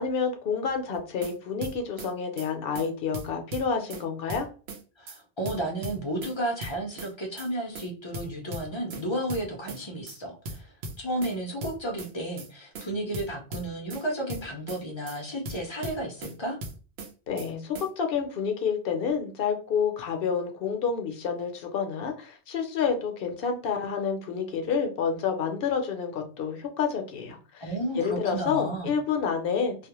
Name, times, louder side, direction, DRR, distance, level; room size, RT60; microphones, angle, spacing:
voice 1, 0.0-4.5 17.3-29.9, left 6 dB, 65° left, 5 dB, 0.7 m, -29 dB
sound 1, 1.0-1.3 1.6-2.1 2.4-2.5 2.8-2.9 3.1-4.0 4.3-4.8 5.1-5.2 5.5-6.3 6.6-7.1 7.4-7.5 7.8-7.9 8.1-9.0 9.3-9.8 10.1-10.2 10.5-11.3 11.6-12.1 12.4-12.5 12.8-12.9 13.1-14.0 14.3-14.8 15.1-15.2 15.5-16.3 16.6-17.1 17.4-17.5 17.8-17.9, right 2 dB, 75° right, 0.9 m, -38 dB
voice 2, 5.0-10.7 11.0-16.6 27.6-28.9, right 1 dB, 40° left, 1 dB, 0.4 m, -32 dB
2.3 x 2.1 x 2.9 m, 0.37 s
omnidirectional pair, 1.1 m